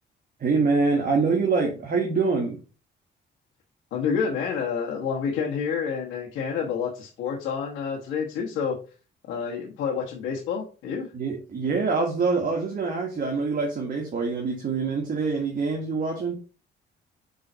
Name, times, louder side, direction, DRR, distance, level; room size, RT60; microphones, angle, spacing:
voice 1, 0.4-2.6 11.1-16.4, right 4 dB, 45° right, 1 dB, 1.4 m, -25 dB
voice 2, 3.9-8.8 9.3-11.1, left 6 dB, 90° left, -3 dB, 1.2 m, -28 dB
5.5 x 3.9 x 4.4 m, 0.34 s
cardioid pair, 90°, 20 cm